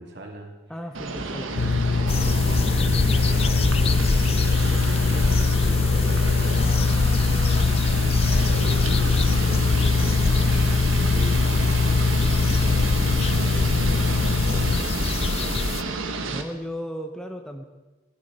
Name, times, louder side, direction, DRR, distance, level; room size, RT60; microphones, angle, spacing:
voice 1, 0.0-0.5 1.1-1.9 2.2-3.4 4.8-14.7, right 1 dB, 60° right, -1 dB, 2.9 m, -41 dB
voice 2, 0.7-1.7 15.3-15.8 16.3-17.6, equal, 5° left, 4 dB, 0.8 m, -36 dB
sound 1, 0.9-16.4, right 3 dB, 85° right, 1.3 m, -30 dB
sound 2, 1.6-14.8, left 4 dB, 90° left, 0.6 m, -22 dB
sound 3, 2.1-15.8, left 3 dB, 30° left, 0.4 m, -27 dB
16.5 x 12.0 x 5.3 m, 1.2 s
head